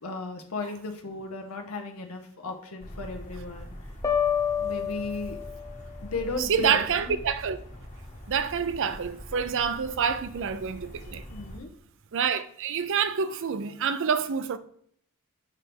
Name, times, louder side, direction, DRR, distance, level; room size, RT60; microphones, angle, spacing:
voice 1, 0.0-3.7 4.6-5.4 6.0-7.2 11.3-11.7, left 3 dB, 70° left, 0.9 m, -35 dB
sound 1, 2.8-11.6, equal, 35° left, 1.4 m, -43 dB
sound 2, 4.0-5.9, left 8 dB, 15° left, 0.8 m, -28 dB
voice 2, 6.4-7.6 8.3-11.2 12.1-14.6, right 7 dB, 60° right, 0.5 m, -27 dB
7.2 x 3.4 x 6.0 m
head